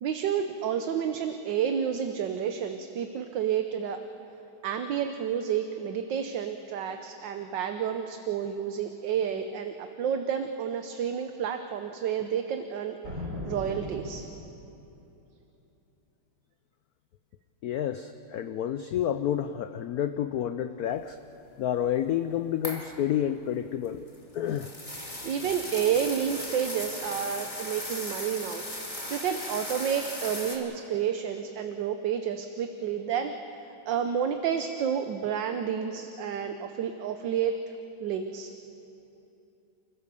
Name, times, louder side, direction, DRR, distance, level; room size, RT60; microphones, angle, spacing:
voice 1, 0.0-4.0 4.6-13.0 13.5-14.3 25.2-33.3 33.9-37.5 38.0-38.5, right 8 dB, 65° right, 7 dB, 1.4 m, -30 dB
sound 1, 13.0-14.8, left 1 dB, 45° right, 7.5 m, -38 dB
voice 2, 17.6-21.2 21.6-24.1 24.3-24.7, left 10 dB, 80° left, 10 dB, 0.8 m, -29 dB
sound 2, 22.6-22.9 23.9-30.6, left 1 dB, 15° left, 2.5 m, -37 dB
29.5 x 16.0 x 6.9 m, 2.9 s
omnidirectional pair, 2.3 m